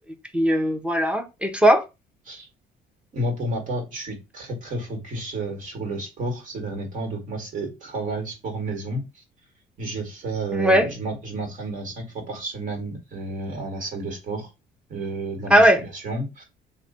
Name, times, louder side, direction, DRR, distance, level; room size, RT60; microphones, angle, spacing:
voice 1, 0.3-1.8 10.5-10.9 15.5-15.8, equal, 5° right, 0.6 m, -18 dB
voice 2, 3.1-9.2 9.8-14.5 14.9-16.4, right 2 dB, 50° right, 1.4 m, -31 dB
3.1 x 2.2 x 4.0 m
cardioid pair, 110°, 17 cm